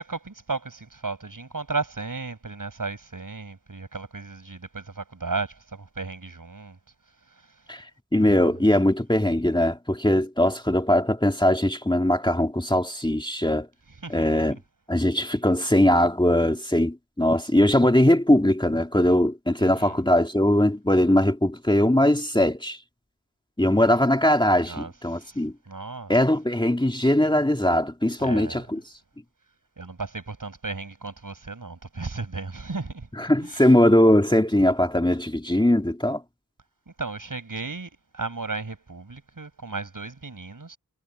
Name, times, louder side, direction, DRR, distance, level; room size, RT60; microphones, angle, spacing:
voice 1, 0.0-6.8 14.0-14.4 19.6-19.9 24.6-24.9 25.2-25.4 25.7-26.1 28.2-28.6 29.8-33.1 33.4-33.7 37.0-40.8, right 3 dB, 65° right, 6.6 m, -34 dB
voice 2, 8.1-13.7 14.1-14.6 14.9-22.8 23.6-25.5 26.1-28.8 33.2-36.2, left 1 dB, 15° left, 2.2 m, -21 dB
wide cardioid pair, 70°, 35 cm